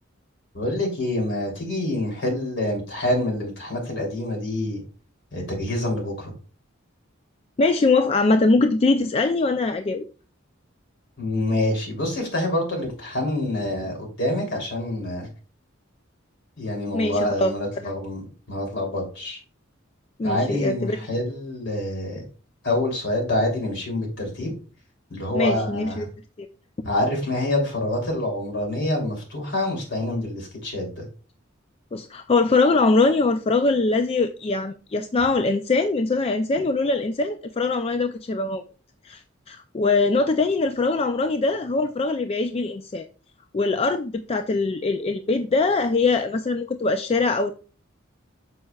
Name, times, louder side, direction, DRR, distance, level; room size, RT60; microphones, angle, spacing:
voice 1, 0.5-4.8 5.3-6.3 11.2-15.3 16.6-18.2 18.5-19.4 20.2-22.2 22.6-24.5 25.1-26.1 26.8-31.0, left 1 dB, 60° left, 3.1 m, -26 dB
voice 2, 7.6-10.0 16.9-17.5 17.8-17.9 20.2-21.0 25.3-26.1 26.4-26.5 26.8-26.9 31.9-38.6 39.0-39.2 39.5-43.1 43.5-47.6, left 3 dB, 30° left, 0.4 m, -22 dB
9.1 x 6.4 x 2.3 m
head